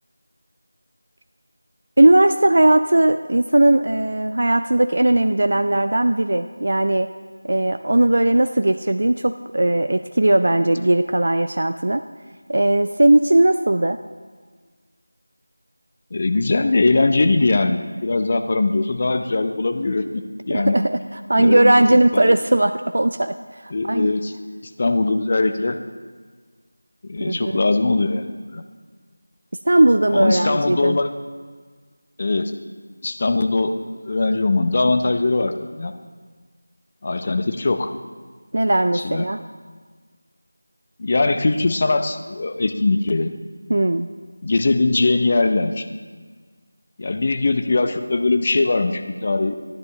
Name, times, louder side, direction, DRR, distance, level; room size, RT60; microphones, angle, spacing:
voice 1, 2.0-7.1 7.4-12.0 12.5-14.0 20.5-21.0 21.3-23.3 23.8-24.1 27.2-27.6 29.7-31.0 38.5-39.4 43.7-44.1, right 1 dB, 55° right, 9 dB, 0.4 m, -18 dB
voice 2, 16.1-20.8 21.4-22.4 23.7-24.3 24.8-25.8 27.0-28.6 30.1-31.1 32.2-32.5 33.0-35.9 37.0-37.9 38.9-39.3 41.0-43.3 44.4-45.8 47.0-49.6, left 3 dB, 30° left, 7 dB, 0.6 m, -21 dB
15.0 x 10.5 x 3.3 m, 1.5 s
figure-of-eight pair, 170°, 0 cm